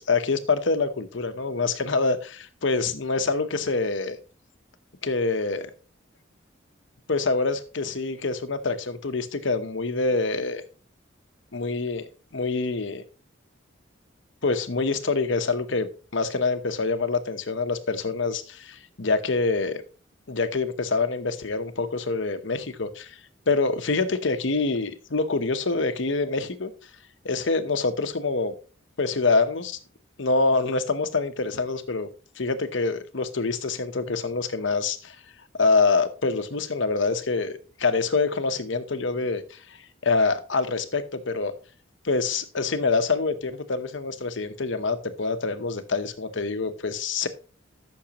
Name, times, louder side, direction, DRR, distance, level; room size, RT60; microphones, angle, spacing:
voice 1, 0.0-4.2 5.0-5.7 7.1-10.6 11.5-12.0 12.3-13.0 14.4-19.8 20.3-23.2 23.5-26.7 27.2-28.5 29.0-29.8 30.2-32.1 32.4-35.2 35.6-41.5 42.0-47.3, left 3 dB, 70° left, 9 dB, 1.0 m, -26 dB
13.5 x 6.4 x 3.0 m, 0.37 s
head